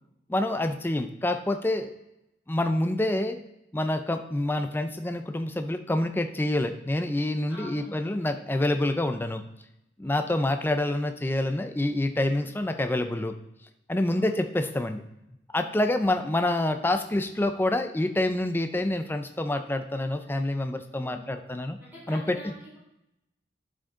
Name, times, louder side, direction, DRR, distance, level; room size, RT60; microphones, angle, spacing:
voice 1, 0.3-1.9 2.5-3.4 3.7-9.4 10.0-13.3 13.9-15.0 15.5-21.8 22.1-22.4, left 1 dB, 10° left, 7 dB, 0.4 m, -27 dB
voice 2, 7.5-8.0 10.0-10.1 14.0-14.5 21.0-21.2 21.8-22.8, left 1 dB, 10° right, -8 dB, 3.3 m, -45 dB
11.5 x 5.1 x 3.7 m, 0.87 s
head